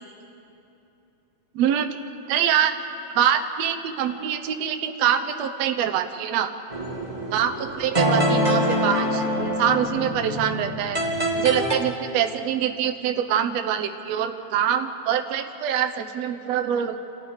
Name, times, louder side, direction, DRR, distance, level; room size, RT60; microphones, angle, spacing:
voice 1, 1.6-1.9 2.3-2.7 3.1-6.5 7.3-11.0 11.3-17.0, right 9 dB, 65° right, 6 dB, 1.9 m, -24 dB
sound 1, 6.7-11.7, equal, 15° right, 2.1 m, -25 dB
29.0 x 29.0 x 4.9 m, 2.9 s
omnidirectional pair, 3.7 m